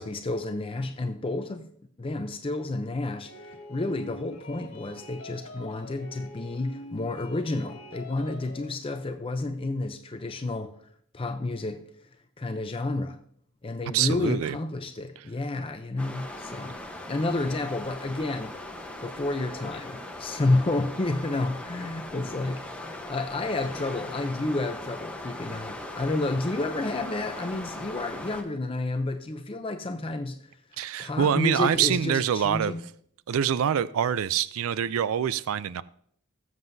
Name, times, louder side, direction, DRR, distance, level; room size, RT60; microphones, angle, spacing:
voice 1, 0.0-1.7 2.0-10.8 11.1-11.8 12.4-13.2 13.6-16.8 17.1-18.5 19.0-30.5 31.0-32.9, left 2 dB, 25° left, 0.5 m, -30 dB
sound 1, 3.2-8.7, left 1 dB, 75° left, 1.9 m, -44 dB
voice 2, 13.9-14.6 30.8-32.7 33.3-35.8, right 8 dB, 70° right, 0.4 m, -25 dB
sound 2, 16.0-28.4, left 1 dB, 5° left, 0.9 m, -39 dB
19.0 x 7.6 x 2.6 m
head